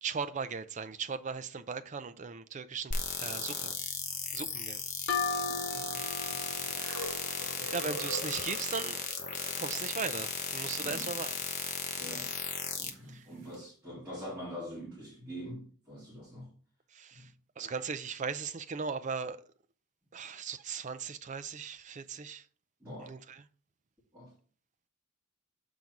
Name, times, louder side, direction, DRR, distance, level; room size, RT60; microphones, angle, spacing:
voice 1, 0.0-3.8 4.3-4.8 7.4-9.0 9.6-11.4 13.1-13.2 16.9-19.4 20.1-22.5 23.0-23.4, right 5 dB, 35° right, 0.4 m, -38 dB
sound 1, 2.9-12.9, left 6 dB, 35° left, 0.9 m, -36 dB
sound 2, 5.1-8.6, left 4 dB, 55° left, 1.6 m, -37 dB
voice 2, 5.2-7.7 10.8-11.1 12.0-12.3 12.8-16.5 17.1-17.3 22.8-23.2 24.1-24.3, equal, 10° right, 2.4 m, -45 dB
sound 3, 6.6-12.7 13.5-13.6, right 1 dB, 55° right, 2.4 m, -45 dB
7.3 x 3.9 x 4.6 m
head